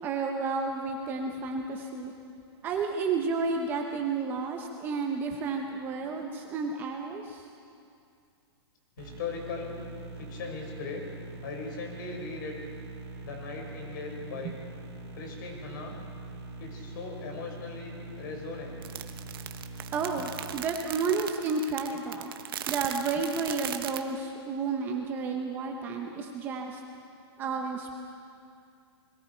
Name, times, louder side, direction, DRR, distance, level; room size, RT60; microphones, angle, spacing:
voice 1, 0.0-2.1 2.6-7.5 14.4-14.5 19.9-22.3 22.7-26.8 27.4-28.0, right 4 dB, 15° right, 3 dB, 0.8 m, -31 dB
voice 2, 9.0-9.7 10.1-11.0 11.4-12.6 13.2-14.5 15.1-16.0 16.6-18.9, left 4 dB, 45° left, 1 dB, 5.0 m, -39 dB
sound 1, 9.0-20.5, right 2 dB, 80° right, 3.4 m, -43 dB
sound 2, 18.8-24.0, right 10 dB, 55° right, 1.1 m, -38 dB
29.0 x 22.0 x 4.5 m, 2.4 s
hypercardioid pair, 175°, 14 cm